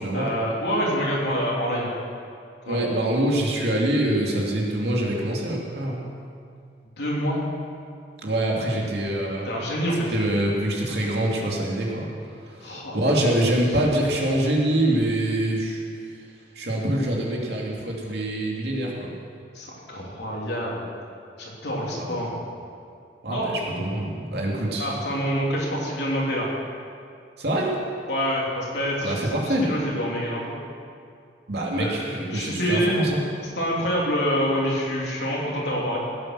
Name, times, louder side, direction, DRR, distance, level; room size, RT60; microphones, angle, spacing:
voice 1, 0.1-1.9 2.6-2.9 7.0-7.4 9.4-10.1 12.6-13.2 19.5-20.9 21.4-22.3 23.3-23.5 24.8-26.5 28.1-30.4 31.8-33.0 33.5-36.0, equal, 70° left, -4 dB, 3.5 m, -26 dB
voice 2, 2.7-6.0 8.2-9.5 10.0-12.1 12.5-15.8 16.5-19.1 21.9-22.3 23.2-24.9 27.4-27.8 29.0-29.7 31.5-33.2, right 1 dB, 65° right, -2 dB, 2.7 m, -25 dB
18.0 x 8.7 x 6.3 m, 2.3 s
head